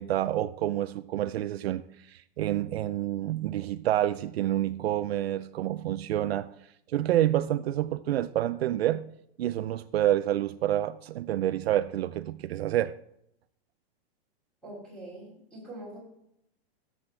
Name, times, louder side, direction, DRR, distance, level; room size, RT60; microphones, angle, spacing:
voice 1, 0.0-6.5 6.9-9.0 9.4-12.9, right 13 dB, 70° right, 0.5 m, -28 dB
voice 2, 14.6-16.0, right 1 dB, 5° left, 3.4 m, -43 dB
15.5 x 7.8 x 3.3 m
supercardioid pair, 180°, 32 cm